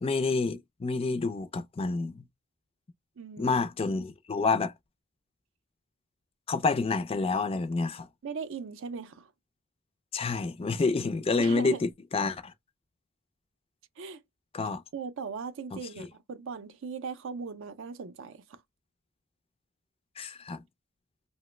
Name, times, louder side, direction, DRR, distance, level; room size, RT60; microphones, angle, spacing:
voice 1, 0.0-2.2 3.4-4.7 6.5-8.1 10.1-12.5 14.5-14.8 15.7-16.1 20.2-20.6, left 4 dB, 25° left, 0.3 m, -28 dB
voice 2, 3.2-4.0 8.2-9.3 11.4-11.8 14.0-14.2 14.9-18.6, right 5 dB, 60° right, 0.4 m, -39 dB
2.9 x 2.0 x 3.1 m
head